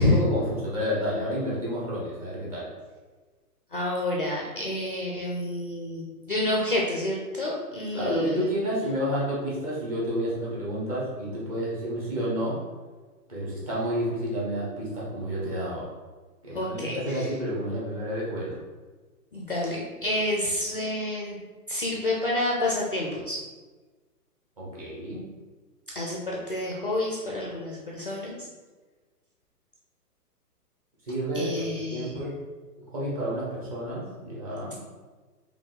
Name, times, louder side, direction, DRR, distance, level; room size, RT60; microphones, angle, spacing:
voice 1, 0.0-2.7 7.9-12.6 13.3-15.9 16.4-18.6 24.6-25.2 31.1-31.6 31.9-32.3 32.9-34.7, equal, 25° right, -6 dB, 1.0 m, -30 dB
voice 2, 3.7-8.5 16.5-17.3 19.3-21.4 21.7-23.4 25.9-28.4 31.3-32.1, left 1 dB, 35° left, -2 dB, 0.5 m, -29 dB
5.2 x 2.7 x 3.7 m, 1.3 s
hypercardioid pair, 165°, 47 cm